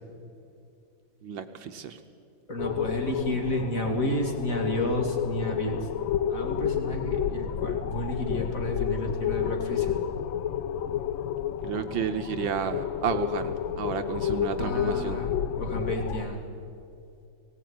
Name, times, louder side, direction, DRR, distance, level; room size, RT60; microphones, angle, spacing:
voice 1, 1.2-2.0 11.6-15.2, right 7 dB, 70° right, 8 dB, 1.5 m, -31 dB
voice 2, 2.5-5.8 6.3-9.9 14.6-16.4, equal, 40° left, 2 dB, 2.5 m, -31 dB
sound 1, 2.6-16.2, left 9 dB, 75° left, 1.4 m, -30 dB
19.0 x 17.0 x 9.4 m, 2.5 s
omnidirectional pair, 2.3 m